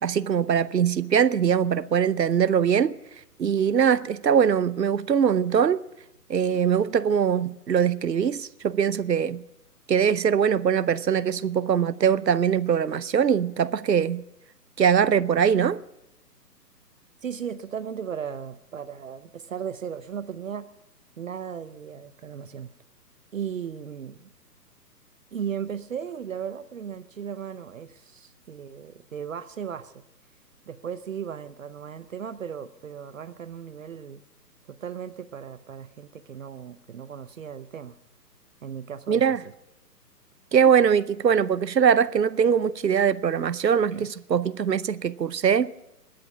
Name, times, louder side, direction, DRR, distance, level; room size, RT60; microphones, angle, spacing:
voice 1, 0.0-3.0 3.4-5.8 6.3-9.4 9.9-14.2 14.8-15.8 39.1-39.4 40.5-45.7, right 7 dB, 85° right, 0.8 m, -22 dB
voice 2, 17.2-20.7 21.2-22.7 23.3-24.3 25.3-30.0 30.7-34.2 34.7-38.0 38.6-39.5 43.9-44.1, right 8 dB, 55° right, 0.7 m, -36 dB
21.0 x 7.8 x 7.1 m
figure-of-eight pair, 135°, 49 cm